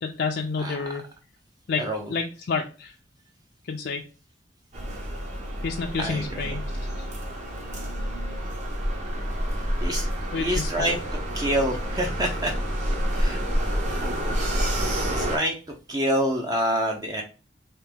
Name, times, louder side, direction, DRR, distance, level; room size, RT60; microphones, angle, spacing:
voice 1, 0.0-1.0 1.7-2.9 3.7-4.0 5.6-6.6 10.3-11.0, left 4 dB, 60° left, 2 dB, 0.4 m, -29 dB
voice 2, 1.8-2.1 6.0-6.6 9.8-11.0 11.3-12.5 13.2-13.4 14.5-17.2, equal, 20° right, 2 dB, 0.4 m, -27 dB
sound 1, 4.7-15.4, equal, 40° right, 0.9 m, -28 dB
3.4 x 2.9 x 3.2 m, 0.35 s
head